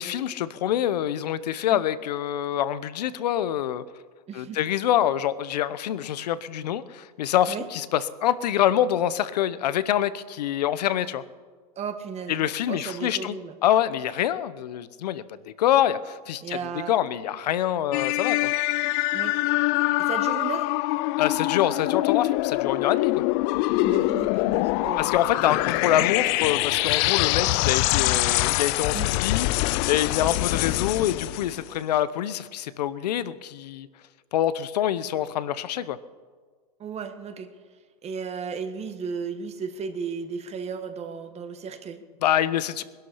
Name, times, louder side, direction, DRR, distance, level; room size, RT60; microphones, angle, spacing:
voice 1, 0.0-3.8 4.3-11.2 12.3-13.4 13.6-15.2 15.6-18.5 21.2-23.2 25.0-33.9 34.3-36.0 42.2-42.8, left 11 dB, 80° left, 16 dB, 0.9 m, -25 dB
voice 2, 4.3-4.6 7.5-7.7 11.8-12.4 12.7-13.5 16.4-17.0 19.1-19.3 20.0-20.7 23.8-25.0 28.9-29.1 36.8-37.5 38.0-42.0, right 6 dB, 30° right, 8 dB, 1.6 m, -34 dB
sound 1, 17.9-31.7, left 20 dB, 50° left, 0.4 m, -24 dB
20.5 x 11.5 x 5.7 m, 1.5 s
hypercardioid pair, 110°, 21 cm